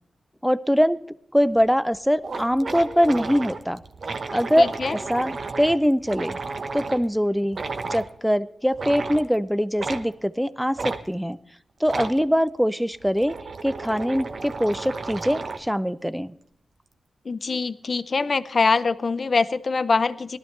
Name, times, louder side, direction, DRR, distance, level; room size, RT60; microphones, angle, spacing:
voice 1, 0.4-1.0 1.3-3.8 4.3-4.6 4.9-6.4 6.7-7.6 7.9-11.4 11.8-13.3 13.6-16.3, equal, ahead, 16 dB, 0.6 m, -22 dB
sound 1, 1.6-1.7 1.9-2.0 2.2-7.1 7.5-8.1 8.7-9.3 9.8-10.1 10.8-11.0 11.8-12.2 12.9-15.7, right 4 dB, 55° right, 1.1 m, -33 dB
voice 2, 4.6-5.0 17.2-20.4, left 4 dB, 50° left, 13 dB, 0.6 m, -23 dB
18.5 x 13.0 x 3.3 m, 0.71 s
wide cardioid pair, 85°, 0 cm